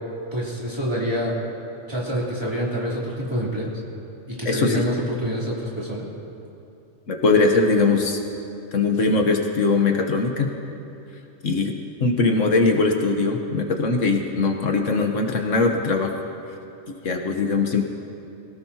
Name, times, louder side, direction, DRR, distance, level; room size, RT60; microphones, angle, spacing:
voice 1, 0.3-1.3 1.9-3.7 4.3-6.1, equal, 20° right, -6 dB, 3.3 m, -26 dB
voice 2, 4.4-4.8 7.1-8.2 8.7-10.5 11.4-16.1 16.9-17.8, left 3 dB, 70° left, 3 dB, 1.4 m, -21 dB
24.0 x 17.5 x 2.9 m, 2.8 s
omnidirectional pair, 1.3 m